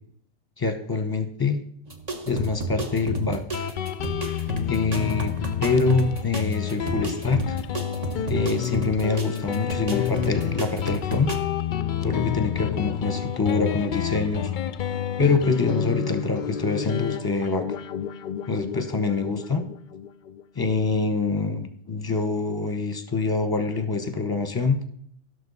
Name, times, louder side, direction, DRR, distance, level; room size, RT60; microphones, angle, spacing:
voice 1, 0.6-1.6 2.3-3.7 4.7-5.3 5.6-7.6 8.3-11.3 12.0-14.5 15.2-17.6 18.5-19.6 20.5-24.8, left 4 dB, 20° left, 8 dB, 1.0 m, -25 dB
sound 1, 1.9-11.4, right 2 dB, 35° right, 1.3 m, -33 dB
Guitar, 3.5-20.7, left 9 dB, 60° left, 0.5 m, -29 dB
16.5 x 6.5 x 4.1 m, 0.66 s
omnidirectional pair, 1.2 m